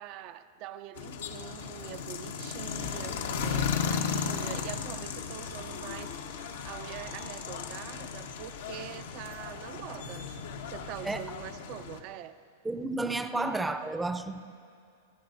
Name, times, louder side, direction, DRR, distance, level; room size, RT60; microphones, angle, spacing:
voice 1, 0.0-10.4 10.7-12.4, right 12 dB, 50° right, 11 dB, 0.5 m, -44 dB
sound 1, 1.0-12.0, left 6 dB, 75° left, 1.1 m, -35 dB
voice 2, 12.6-14.6, right 2 dB, 10° right, 9 dB, 0.6 m, -32 dB
29.0 x 15.5 x 2.6 m, 2.4 s
hypercardioid pair, 110°, 0 cm